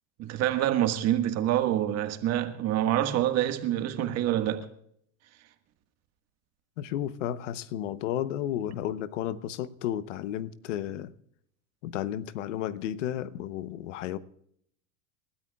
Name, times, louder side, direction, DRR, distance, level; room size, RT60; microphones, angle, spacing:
voice 1, 0.2-4.7, right 12 dB, 45° right, 1.7 m, -26 dB
voice 2, 6.8-11.1 11.8-14.2, left 11 dB, 80° left, 0.9 m, -33 dB
28.5 x 13.0 x 2.4 m
supercardioid pair, 130°, 36 cm